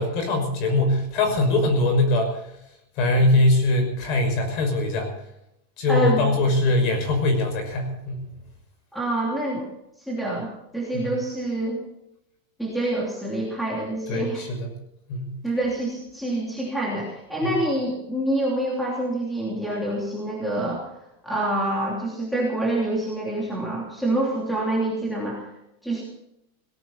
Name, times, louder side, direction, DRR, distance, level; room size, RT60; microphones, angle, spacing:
voice 1, 0.0-2.4 3.0-5.1 5.8-8.2 10.9-11.1 14.1-14.7 15.1-15.3, left 2 dB, 35° left, 4 dB, 5.9 m, -22 dB
voice 2, 5.9-6.3 8.9-9.7 10.0-11.8 12.6-14.4 15.4-20.9 21.2-25.5 25.8-26.0, right 1 dB, ahead, -4 dB, 2.9 m, -26 dB
18.5 x 17.5 x 4.2 m, 0.83 s
supercardioid pair, 180°, 0 cm